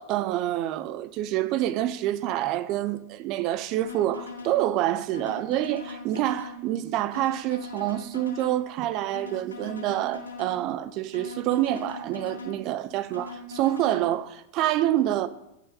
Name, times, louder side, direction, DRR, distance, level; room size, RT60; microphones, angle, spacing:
voice 1, 0.0-15.3, right 13 dB, 40° right, 0.5 m, -27 dB
sound 1, 3.8-4.6 5.1-6.6 7.1-8.6 9.1-10.6 11.1-12.6 13.1-14.0, left 4 dB, 75° left, 2.1 m, -40 dB
9.4 x 5.5 x 5.4 m
figure-of-eight pair, 90°, 0 cm